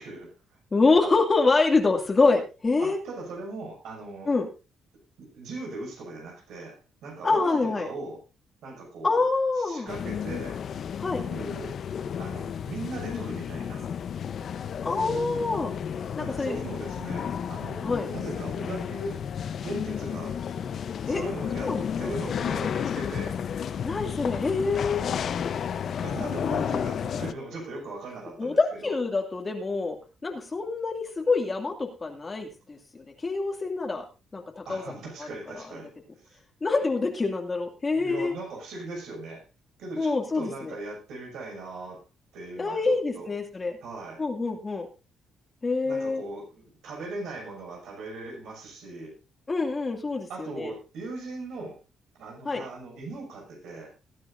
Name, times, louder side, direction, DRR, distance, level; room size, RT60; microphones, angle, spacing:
voice 1, 0.0-0.6 2.8-4.3 5.2-8.2 8.6-9.3 9.5-10.6 11.3-11.7 12.2-14.0 16.2-19.2 19.6-20.4 21.1-23.4 26.0-28.9 34.7-35.9 36.2-36.4 37.9-39.4 39.8-42.0 42.3-43.3 43.8-44.2 45.8-49.1 50.3-51.8 52.2-53.9, right 2 dB, 80° right, 0 dB, 6.3 m, -39 dB
voice 2, 0.7-3.0 4.3-4.5 7.2-7.9 9.0-9.9 11.0-11.2 14.8-15.7 16.2-16.6 17.8-18.1 21.1-21.2 21.6-22.1 23.8-25.1 28.4-30.0 30.2-34.0 34.3-35.3 36.6-38.3 40.0-40.7 42.6-43.8 44.2-44.9 45.6-46.2 49.5-50.7 52.5-52.6, left 3 dB, 30° left, 2 dB, 2.3 m, -26 dB
sound 1, 9.9-27.3, left 8 dB, 60° left, 0.8 m, -32 dB
20.0 x 9.7 x 2.6 m, 0.30 s
cardioid pair, 90°, 0 cm